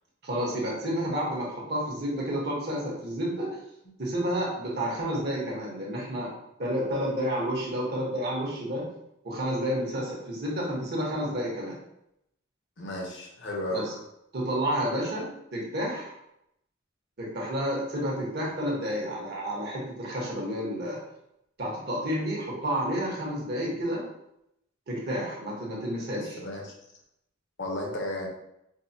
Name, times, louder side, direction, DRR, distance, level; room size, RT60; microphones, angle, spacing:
voice 1, 0.2-3.6 4.0-6.3 6.6-8.8 9.2-11.8 13.7-13.9 14.3-16.1 17.2-21.0 21.6-24.0 24.9-26.4, equal, 50° right, -3 dB, 1.1 m, -30 dB
voice 2, 12.8-13.8 26.2-26.7 27.6-28.3, left 1 dB, 60° left, -1 dB, 0.9 m, -33 dB
4.7 x 2.2 x 2.7 m, 0.80 s
head